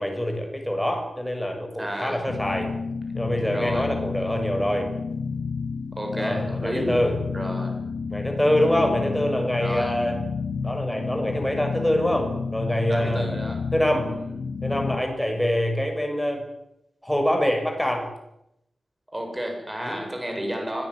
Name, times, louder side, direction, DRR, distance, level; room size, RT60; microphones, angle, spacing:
voice 1, 0.0-2.7 3.1-4.9 6.2-7.2 8.1-10.2 10.6-13.3 13.7-14.1 14.6-16.5 17.0-18.1 19.8-20.0, equal, 5° left, 3 dB, 6.6 m, -25 dB
voice 2, 1.8-2.2 3.5-3.9 5.9-6.9 7.3-7.8 9.6-10.0 12.9-13.6 14.2-14.3 19.1-20.9, equal, 15° right, 3 dB, 7.7 m, -31 dB
sound 1, 2.3-15.0, left 5 dB, 75° left, 3.2 m, -30 dB
24.5 x 19.0 x 10.0 m, 0.82 s
wide cardioid pair, 175°, 0 cm